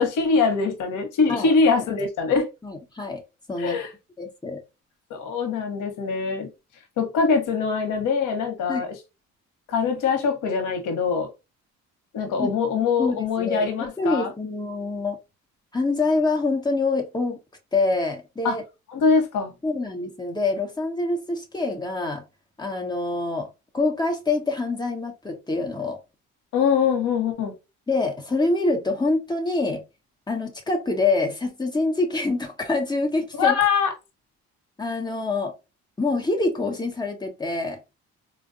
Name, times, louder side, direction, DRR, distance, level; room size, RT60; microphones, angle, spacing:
voice 1, 0.0-2.5 3.6-3.9 5.1-6.5 7.0-8.9 9.7-11.3 12.1-14.3 18.4-18.6 18.9-19.5 26.5-27.5 33.4-33.9, left 5 dB, 85° left, 0.9 m, -23 dB
voice 2, 1.3-1.8 2.6-3.2 3.5-3.8 4.2-4.6 8.7-8.8 12.4-12.5 13.0-15.2 15.7-17.4 17.7-18.6 19.6-22.2 22.6-23.5 23.7-26.0 27.9-29.8 30.3-33.6 34.8-35.5 36.0-37.8, left 3 dB, 15° left, 1.2 m, -25 dB
4.0 x 2.2 x 2.5 m
cardioid pair, 90°, 30 cm